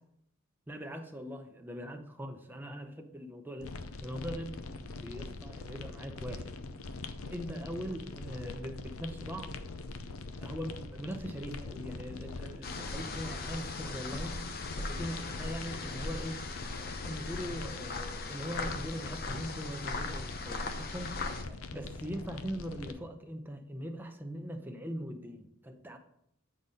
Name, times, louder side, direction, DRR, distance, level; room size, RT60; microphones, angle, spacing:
voice 1, 0.7-3.7 4.0-6.5 7.3-9.6 10.4-14.4 14.8-16.4 16.8-21.2 21.5-26.0, equal, 10° right, 5 dB, 0.6 m, -41 dB
sound 1, 3.6-22.9, left 3 dB, 85° left, 0.6 m, -43 dB
sound 2, 12.6-21.4, left 3 dB, 45° left, 0.7 m, -39 dB
8.6 x 4.1 x 5.0 m, 0.74 s
head